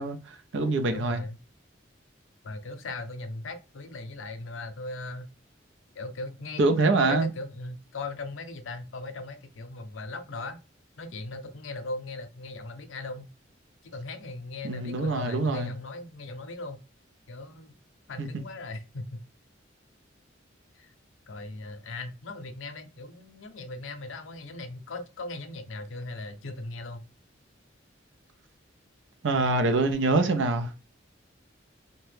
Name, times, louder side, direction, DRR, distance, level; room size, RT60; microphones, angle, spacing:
voice 1, 0.0-1.2 6.6-7.3 14.6-15.7 18.2-18.3 29.2-30.8, right 3 dB, 70° right, 0.5 m, -25 dB
voice 2, 0.9-1.4 2.4-5.3 5.9-10.6 11.0-13.3 13.8-16.8 17.3-17.7 18.1-19.2 20.7-20.9 21.3-27.0, left 2 dB, 80° left, 0.6 m, -38 dB
2.8 x 2.1 x 3.3 m
head